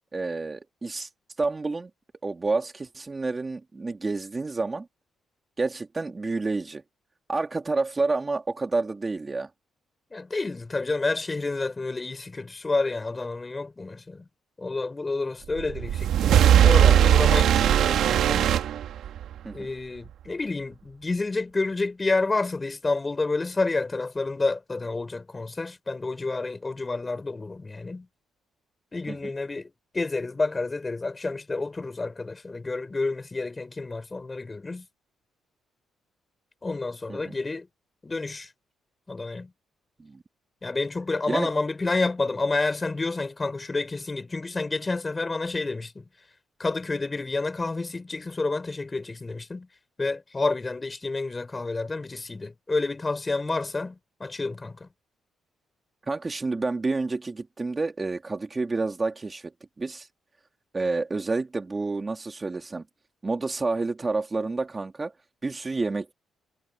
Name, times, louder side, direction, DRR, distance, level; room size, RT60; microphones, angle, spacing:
voice 1, 0.1-1.1 1.4-1.9 2.2-4.9 5.6-6.8 7.3-9.5 19.4-19.7 29.1-29.2 37.1-37.3 40.0-40.2 41.3-41.5 56.1-59.5 59.8-60.1 60.7-62.8 63.2-65.1 65.4-66.1, right 3 dB, 25° right, 2.8 m, -29 dB
voice 2, 10.1-14.3 14.6-18.5 19.5-28.1 28.9-34.9 36.6-37.7 38.0-38.5 39.1-39.5 40.6-46.0 46.6-49.7 50.0-54.9, left 3 dB, 25° left, 5.5 m, -29 dB
sound 1, 15.6-19.4, right 10 dB, 75° right, 2.5 m, -19 dB
cardioid pair, 90°, 0 cm